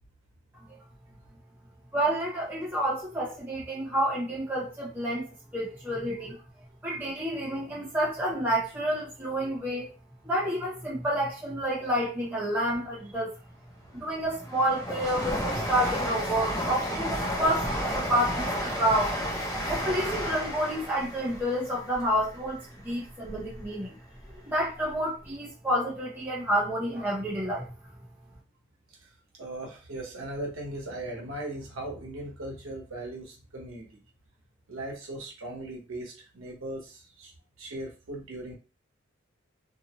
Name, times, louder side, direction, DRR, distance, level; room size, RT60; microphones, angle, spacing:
voice 1, 1.9-5.3 5.5-6.4 6.8-9.9 10.2-13.3 13.9-19.2 19.7-24.0 24.4-27.7, right 1 dB, 10° right, 0.9 m, -29 dB
Train, 13.5-23.7 24.1-25.0 25.2-25.3, equal, 15° left, 0.6 m, -33 dB
voice 2, 29.4-33.9 34.7-37.3 37.6-38.5, right 1 dB, 85° right, 1.0 m, -38 dB
2.7 x 2.1 x 2.9 m
head